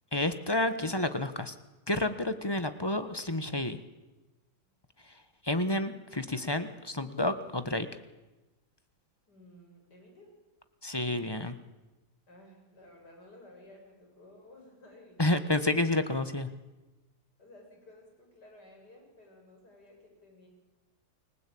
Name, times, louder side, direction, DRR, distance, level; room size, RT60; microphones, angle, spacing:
voice 1, 0.1-1.5 1.9-3.8 5.4-7.9 10.8-11.5 15.2-16.5, left 2 dB, 15° left, 10 dB, 1.3 m, -30 dB
voice 2, 9.3-10.4 12.3-15.6 17.4-20.5, left 1 dB, 75° left, 2 dB, 7.5 m, -55 dB
29.5 x 20.5 x 8.7 m, 1.1 s
omnidirectional pair, 1.8 m